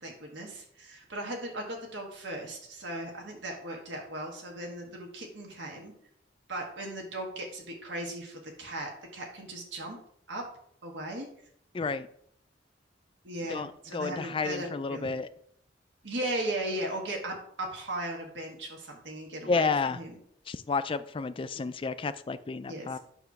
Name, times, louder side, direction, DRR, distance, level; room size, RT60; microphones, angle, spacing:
voice 1, 0.0-5.9 6.5-10.0 10.3-10.4 10.8-11.3 13.2-15.1 16.0-20.2 21.5-21.7 22.7-23.0, right 1 dB, 80° right, 0 dB, 1.4 m, -37 dB
voice 2, 11.7-12.1 13.5-15.3 19.5-20.0 20.5-23.0, left 4 dB, 30° left, 12 dB, 0.3 m, -31 dB
8.9 x 3.0 x 5.8 m, 0.68 s
head